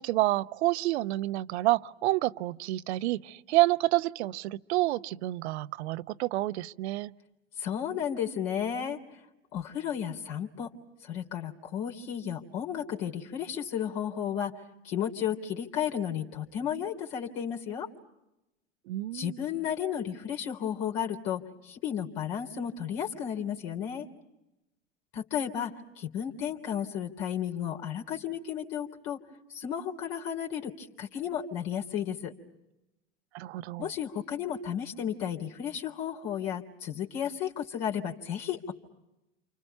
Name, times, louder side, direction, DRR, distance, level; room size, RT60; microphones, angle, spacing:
voice 1, 0.0-7.1 18.9-19.4 33.3-33.9, right 17 dB, 60° right, 13 dB, 1.0 m, -29 dB
voice 2, 7.6-9.2 9.5-10.7 11.0-17.9 19.1-24.1 25.1-29.2 29.5-32.3 33.8-38.7, left 9 dB, 55° left, 2 dB, 3.5 m, -33 dB
29.5 x 29.0 x 5.6 m, 0.90 s
figure-of-eight pair, 85°, 37 cm